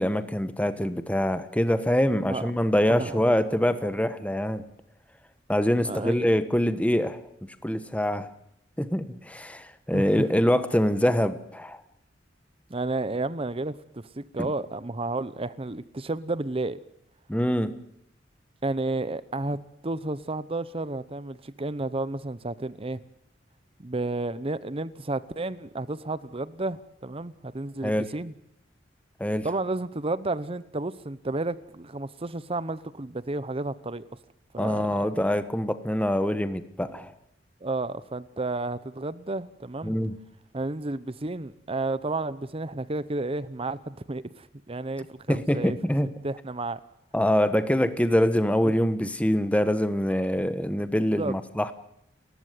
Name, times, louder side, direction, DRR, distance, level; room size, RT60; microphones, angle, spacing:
voice 1, 0.0-4.6 5.5-7.2 7.6-8.3 8.8-11.8 14.4-14.5 17.3-17.7 27.8-28.1 29.2-29.5 34.6-37.1 39.8-40.2 45.3-46.1 47.1-51.7, equal, 10° left, 10 dB, 1.3 m, -24 dB
voice 2, 2.9-3.2 5.8-6.3 9.9-10.1 12.7-16.8 18.6-19.6 19.8-23.0 23.8-28.3 29.4-34.0 34.5-35.0 37.6-40.0 40.5-45.8 46.2-46.8 50.9-51.3, right 2 dB, 30° right, 16 dB, 0.9 m, -32 dB
30.0 x 14.5 x 9.4 m, 0.80 s
head